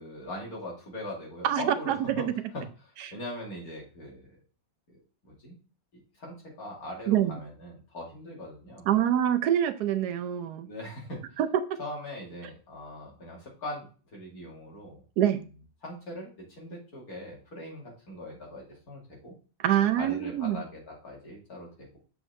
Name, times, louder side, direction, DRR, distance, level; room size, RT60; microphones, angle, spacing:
voice 1, 0.0-2.3 2.5-4.3 5.2-5.6 6.2-9.0 10.6-11.2 11.8-13.9 14.1-15.0 15.8-19.3 20.0-22.0, left 1 dB, 70° left, -2 dB, 2.9 m, -41 dB
voice 2, 1.4-2.3 7.1-7.3 8.9-10.7 11.4-11.8 15.2-15.4 19.6-20.6, right 10 dB, 85° right, 11 dB, 1.2 m, -25 dB
6.8 x 4.4 x 3.6 m, 0.37 s
omnidirectional pair, 1.7 m